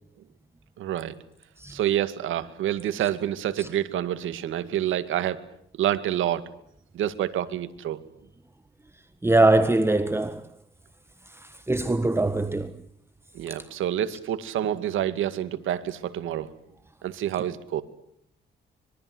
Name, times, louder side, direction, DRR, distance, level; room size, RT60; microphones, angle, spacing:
voice 1, 0.8-1.1 1.7-5.4 5.8-6.5 6.9-8.0 13.3-16.5 17.0-17.8, right 11 dB, 80° right, 2.2 m, -28 dB
voice 2, 9.2-10.5 11.2-12.8 13.5-13.6, right 2 dB, 10° right, 1.5 m, -23 dB
25.0 x 23.5 x 8.0 m
cardioid pair, 90°, 20 cm